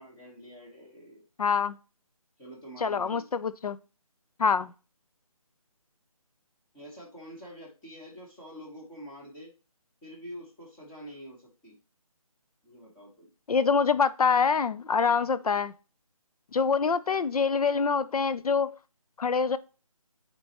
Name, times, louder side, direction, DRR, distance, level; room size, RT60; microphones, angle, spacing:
voice 1, 0.0-1.2 2.4-3.3 6.7-9.5 10.0-11.8 12.6-13.3, equal, 10° left, 1.1 m, -46 dB
voice 2, 1.4-1.8 2.8-3.8 4.4-4.7 13.5-15.7 16.5-18.8 19.2-19.6, left 5 dB, 80° left, 0.5 m, -25 dB
7.7 x 4.4 x 2.8 m
figure-of-eight pair, 170°, 19 cm